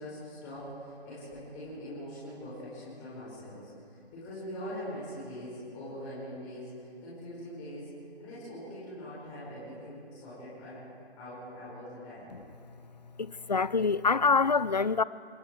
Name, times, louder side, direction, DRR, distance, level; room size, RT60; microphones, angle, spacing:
voice 1, 0.0-7.9 8.2-10.9 11.1-12.3, equal, 15° left, 5.8 m, -42 dB
voice 2, 13.2-15.0, left 4 dB, 40° left, 0.4 m, -25 dB
27.5 x 21.5 x 4.9 m
figure-of-eight pair, 160°, 33 cm